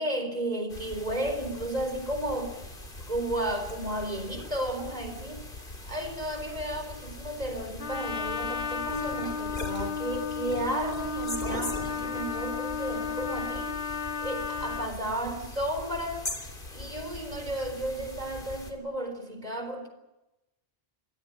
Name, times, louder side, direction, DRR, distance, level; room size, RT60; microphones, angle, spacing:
voice 1, 0.0-2.6 3.1-5.4 5.9-16.2 16.7-19.9, right 1 dB, 40° right, 4.3 m, -33 dB
sound 1, 0.7-18.7, left 2 dB, 55° left, 3.2 m, -41 dB
Trumpet, 7.8-14.9, left 5 dB, 85° left, 1.7 m, -33 dB
25.0 x 16.0 x 9.7 m
omnidirectional pair, 1.1 m